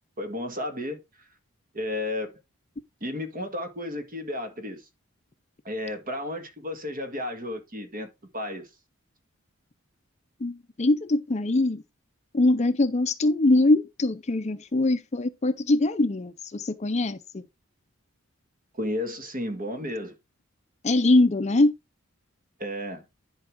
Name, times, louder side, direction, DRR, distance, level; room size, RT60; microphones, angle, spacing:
voice 1, 0.2-1.0 1.7-2.3 3.0-4.8 5.6-8.7 18.7-20.2 22.6-23.0, left 1 dB, 40° right, 1.7 m, -33 dB
voice 2, 10.4-11.8 12.3-17.5 20.8-21.7, left 2 dB, 35° left, 0.6 m, -23 dB
10.5 x 4.7 x 3.6 m
head